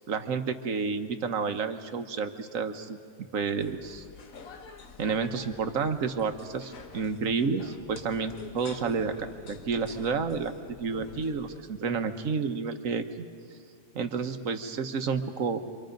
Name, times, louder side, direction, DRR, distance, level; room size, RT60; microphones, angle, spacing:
voice 1, 0.1-3.0 3.3-4.0 5.0-10.5 10.8-13.0 13.9-15.6, right 5 dB, 80° right, 8 dB, 1.5 m, -30 dB
sound 1, 3.6-11.6, left 5 dB, 85° left, 1.6 m, -47 dB
27.5 x 25.0 x 5.2 m, 2.2 s
omnidirectional pair, 1.4 m